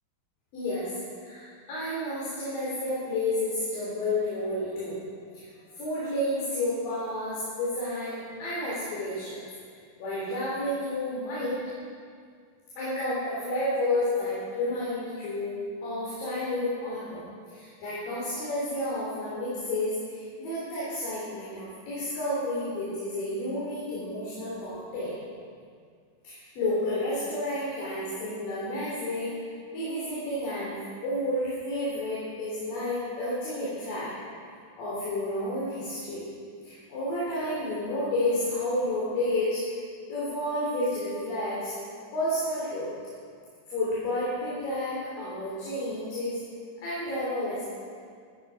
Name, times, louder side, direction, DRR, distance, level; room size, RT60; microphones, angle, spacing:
voice 1, 0.5-5.0 5.3-5.4 5.8-9.4 10.0-11.6 12.8-17.2 17.5-25.1 26.2-29.3 29.7-30.7 31.0-34.2 34.8-36.2 36.6-39.6 40.1-41.7 42.1-42.9 43.7-46.4 46.8-47.6, left 1 dB, 75° left, -8 dB, 5.1 m, -31 dB
15.5 x 14.0 x 4.9 m, 2.1 s
omnidirectional pair, 4.0 m